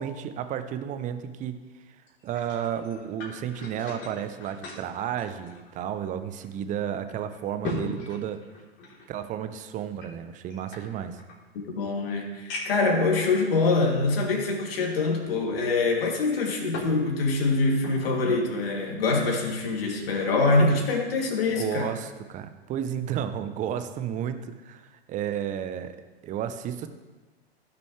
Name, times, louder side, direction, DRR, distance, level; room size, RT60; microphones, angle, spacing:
voice 1, 0.0-1.6 2.2-8.4 9.1-11.2 21.5-26.0 26.2-26.9, right 9 dB, 25° right, 10 dB, 0.7 m, -32 dB
sound 1, 2.1-6.1 6.4-6.5 7.1-9.1 10.0-11.4 11.9-12.0 12.5-12.9 13.7-13.8 16.1-17.0 17.3-18.2 18.6-18.8, left 2 dB, 35° left, 3.4 m, -39 dB
voice 2, 11.8-21.9, left 3 dB, 60° left, 0 dB, 2.8 m, -24 dB
16.0 x 6.9 x 3.3 m, 1.3 s
hypercardioid pair, 110°, 32 cm